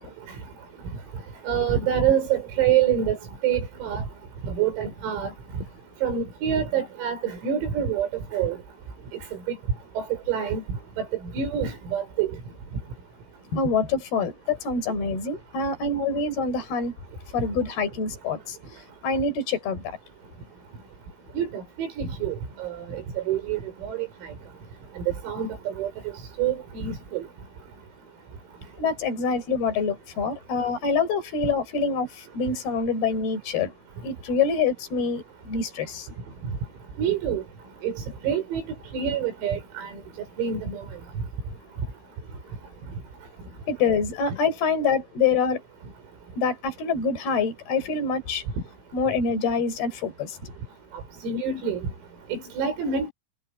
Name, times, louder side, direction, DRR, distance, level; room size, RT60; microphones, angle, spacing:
voice 1, 1.5-3.2 3.4-4.0 4.5-5.3 6.0-8.6 9.5-9.6 10.0-10.6 11.0-11.1 11.3-12.3 21.4-24.3 25.0-25.9 26.4-27.3 37.0-37.4 37.8-38.6 38.9-39.9 40.4-40.8 51.2-51.8 52.3-53.1, right 8 dB, 90° right, 8.8 m, -26 dB
voice 2, 13.5-16.9 17.3-18.6 19.0-20.0 28.8-33.7 34.0-36.1 43.7-45.6 46.4-48.4 48.9-50.5, left 5 dB, 50° left, 7.2 m, -26 dB
omnidirectional pair, 5.9 m